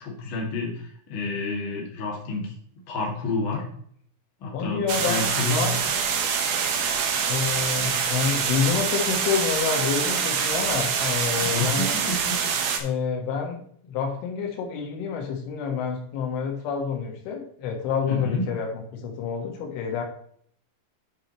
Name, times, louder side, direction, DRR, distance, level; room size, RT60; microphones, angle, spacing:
voice 1, 0.0-2.5 2.9-3.6 4.4-5.6 7.8-7.9 11.4-12.5 18.1-18.5, left 3 dB, 40° left, -2 dB, 2.0 m, -30 dB
voice 2, 4.5-5.8 7.3-12.0 12.8-20.0, left 6 dB, 80° left, 2 dB, 4.1 m, -28 dB
sound 1, 4.9-12.8, right 6 dB, 70° right, 2.4 m, -25 dB
9.9 x 7.6 x 3.1 m, 0.63 s
omnidirectional pair, 5.5 m